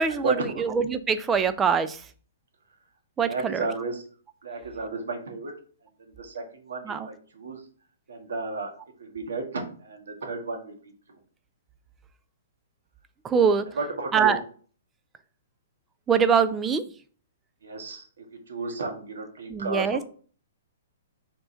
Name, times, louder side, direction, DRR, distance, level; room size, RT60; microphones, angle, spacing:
voice 1, 0.0-2.0 3.2-3.7 6.8-7.1 13.2-13.7 14.1-14.4 16.1-16.9 19.5-20.0, right 6 dB, 10° right, 11 dB, 0.3 m, -23 dB
voice 2, 3.2-4.0 4.4-5.5 6.0-7.6 8.1-8.7 9.0-10.8 13.8-14.4 17.6-19.9, right 3 dB, 90° right, 2 dB, 1.8 m, -33 dB
4.7 x 3.8 x 5.6 m, 0.43 s
hypercardioid pair, 170°, 0 cm